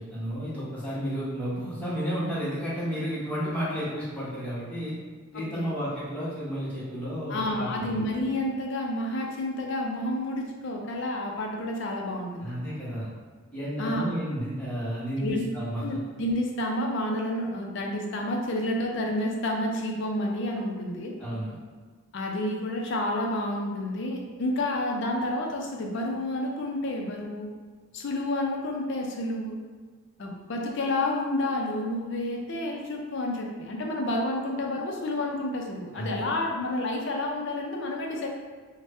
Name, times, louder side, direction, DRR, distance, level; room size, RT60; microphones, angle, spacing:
voice 1, 0.0-4.9 5.3-8.0 12.4-13.1 13.5-15.8 21.2-21.6 35.9-36.3, equal, 5° left, -10 dB, 0.9 m, -32 dB
voice 2, 5.3-5.7 7.3-12.6 13.8-14.0 15.2-15.4 15.8-21.1 22.1-27.5 27.9-29.6 30.2-38.3, left 1 dB, 60° left, 1 dB, 0.4 m, -30 dB
2.6 x 2.1 x 3.3 m, 1.5 s
head